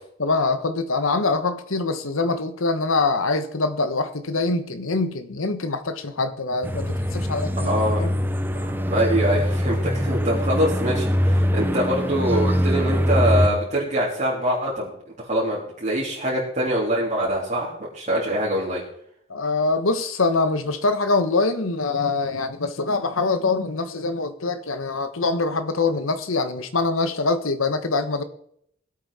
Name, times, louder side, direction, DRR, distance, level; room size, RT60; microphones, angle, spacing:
voice 1, 0.2-8.1 19.3-28.2, left 3 dB, 75° left, 11 dB, 1.2 m, -24 dB
sound 1, 6.6-13.5, equal, 10° right, 0.8 m, -23 dB
voice 2, 7.6-8.0 8.7-14.9 15.2-18.8, equal, 35° right, -7 dB, 3.5 m, -24 dB
20.0 x 8.5 x 4.3 m, 0.70 s
head